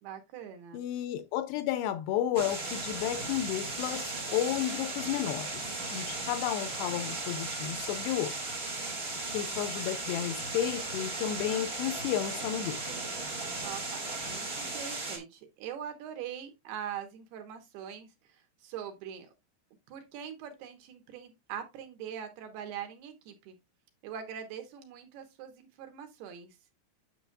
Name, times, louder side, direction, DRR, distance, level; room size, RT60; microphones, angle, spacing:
voice 1, 0.0-0.8 13.6-19.3 19.9-23.6 24.0-26.6, right 9 dB, 70° right, 3.0 m, -42 dB
voice 2, 0.7-8.3 9.3-12.8, left 11 dB, 80° left, 2.6 m, -32 dB
sound 1, 2.3-15.2, right 2 dB, 45° right, 0.7 m, -36 dB
9.3 x 6.9 x 2.4 m
omnidirectional pair, 5.1 m